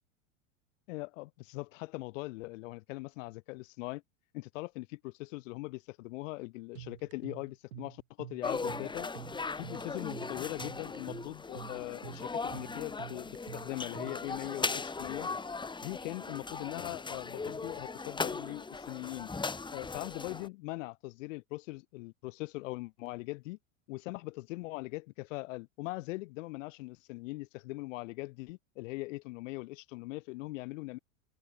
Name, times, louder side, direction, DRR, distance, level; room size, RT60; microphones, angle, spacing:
voice 1, 0.9-4.0 4.3-9.1 9.6-15.3 15.8-19.3 19.7-23.6 23.9-31.0, left 22 dB, 60° left, 5.4 m, -41 dB
sound 1, 6.7-14.3, right 13 dB, 80° right, 6.7 m, -48 dB
sound 2, 8.4-20.5, left 4 dB, 10° left, 3.5 m, -38 dB
hypercardioid pair, 125°, 42 cm